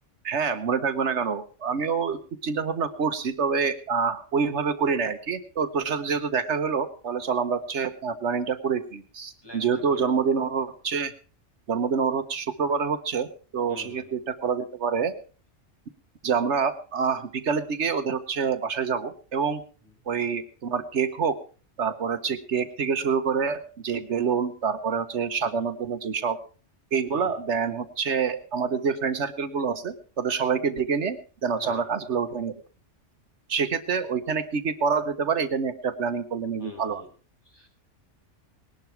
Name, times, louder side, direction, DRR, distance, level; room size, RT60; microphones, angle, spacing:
voice 1, 0.2-11.1 11.7-13.3 13.5-15.1 16.2-19.6 20.1-21.4 21.8-26.4 26.9-32.5 33.5-37.0, right 6 dB, 75° right, 10 dB, 1.3 m, -27 dB
voice 2, 9.4-10.2 13.7-14.0 25.4-25.7 27.1-27.4 27.6-27.8 31.6-31.8 36.6-37.1 37.4-37.7, left 2 dB, 20° left, 0 dB, 6.2 m, -44 dB
19.5 x 12.0 x 4.5 m, 0.39 s
omnidirectional pair, 1.2 m